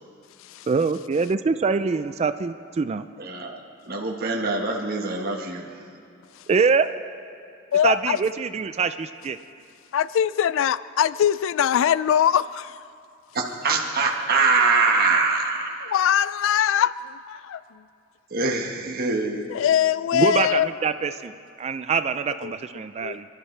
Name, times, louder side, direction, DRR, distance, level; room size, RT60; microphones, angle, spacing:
voice 1, 0.7-3.0 6.5-6.9 7.8-9.4 18.9-19.0 20.1-23.3, right 5 dB, 30° right, 11 dB, 0.3 m, -24 dB
voice 2, 3.2-3.5 3.8-5.6 13.3-15.7 18.3-19.5, right 4 dB, 45° right, 0 dB, 1.4 m, -23 dB
voice 3, 7.7-8.2 9.9-12.8 15.8-17.6 19.5-20.7 22.4-22.5 23.0-23.2, left 9 dB, 65° left, 17 dB, 0.3 m, -22 dB
27.0 x 12.5 x 3.3 m, 2.6 s
head